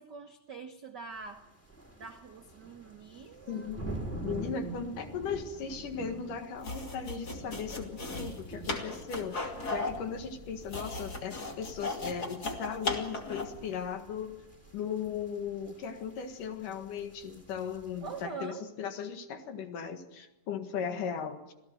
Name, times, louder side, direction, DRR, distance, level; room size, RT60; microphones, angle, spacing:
voice 1, 0.0-1.5 2.0-3.7 18.0-18.7, right 5 dB, 90° right, 4 dB, 0.9 m, -44 dB
sound 1, 1.1-18.2, right 2 dB, 5° left, 3.6 m, -46 dB
voice 2, 3.5-3.9 4.2-14.4 14.7-21.5, left 7 dB, 70° left, 7 dB, 3.3 m, -37 dB
sound 2, 6.6-13.6, left 2 dB, 30° left, 2.7 m, -37 dB
26.5 x 16.5 x 7.8 m, 0.97 s
omnidirectional pair, 3.9 m